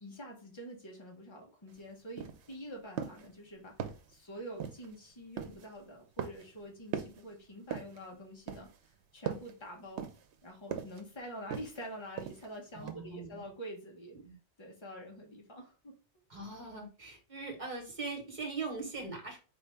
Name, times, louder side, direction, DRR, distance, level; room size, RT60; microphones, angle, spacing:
voice 1, 0.0-10.1 10.4-14.2 14.6-15.9, equal, 25° left, 0 dB, 1.1 m, -47 dB
sound 1, 1.7-1.8 2.2-2.5 3.0-3.3 3.8-4.1 4.6-5.0 5.4-5.7 6.2-6.6 6.9-7.2 7.7-8.0 8.5-8.9 9.3-9.6 10.0-10.4 10.7-11.0 11.5-11.9 12.2-12.6 12.9-13.0, right 8 dB, 90° right, 0.9 m, -39 dB
voice 2, 12.7-13.5 14.1-14.3 16.3-19.4, right 3 dB, 45° right, 0 dB, 1.5 m, -41 dB
4.4 x 2.7 x 3.4 m, 0.34 s
omnidirectional pair, 1.1 m